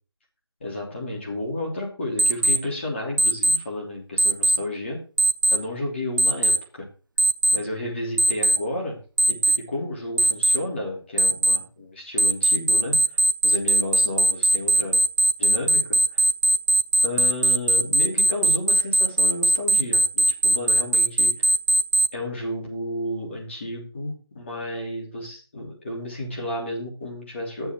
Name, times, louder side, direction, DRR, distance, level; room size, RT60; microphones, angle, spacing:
voice 1, 0.6-5.0 5.5-6.9 7.5-9.0 9.3-13.0 13.4-15.0 15.4-16.2 17.0-21.5 22.1-27.7, left 1 dB, 25° left, -2 dB, 3.1 m, -32 dB
Alarm, 2.2-2.6 3.2-3.6 4.2-4.6 5.2-5.6 6.2-6.6 7.2-7.6 8.2-8.6 9.2-9.6 10.2-10.6 11.2-11.6 12.2-22.1, right 1 dB, 45° right, 0.6 m, -18 dB
10.5 x 7.0 x 4.5 m, 0.35 s
figure-of-eight pair, 170°, 14 cm